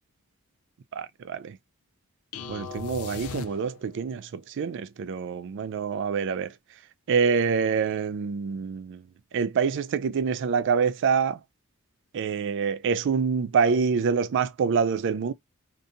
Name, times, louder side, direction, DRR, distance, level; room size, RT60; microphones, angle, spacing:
voice 1, 1.0-1.5 2.5-6.5 7.1-9.0 9.3-11.4 12.1-15.3, right 6 dB, 55° right, 0.3 m, -26 dB
sound 1, 2.3-4.1, left 6 dB, 80° left, 0.4 m, -38 dB
2.6 x 2.4 x 2.6 m
head